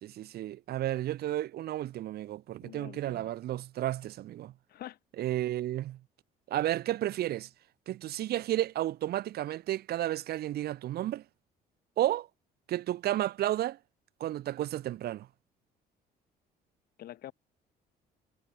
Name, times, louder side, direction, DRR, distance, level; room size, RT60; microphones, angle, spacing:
voice 1, 0.0-4.5 5.2-6.0 6.5-7.5 7.9-11.2 12.0-12.3 12.7-13.8 14.2-15.3, right 13 dB, 70° right, 3.0 m, -32 dB
voice 2, 2.6-3.3 4.7-5.0 17.0-17.3, left 13 dB, 65° left, 2.9 m, -45 dB
cardioid pair, 110°, 17 cm